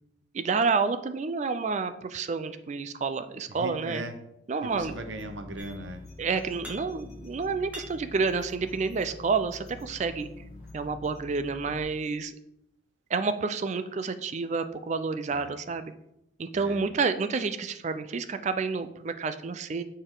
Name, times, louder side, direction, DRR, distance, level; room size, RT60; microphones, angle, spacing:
voice 1, 0.3-4.0 4.5-4.9 6.2-10.3 10.7-12.3 13.1-15.9 16.4-19.8, right 4 dB, 40° right, 11 dB, 0.4 m, -29 dB
voice 2, 3.5-4.1 4.6-6.0 15.3-15.6 16.5-16.8, right 2 dB, 75° right, 7 dB, 0.8 m, -38 dB
sound 1, 4.7-11.8, left 2 dB, 35° left, 1.2 m, -46 dB
sound 2, 5.6-6.1 6.4-7.2 7.5-9.1 9.7-10.9, equal, 10° right, 1.1 m, -48 dB
6.9 x 4.2 x 3.8 m, 0.81 s
head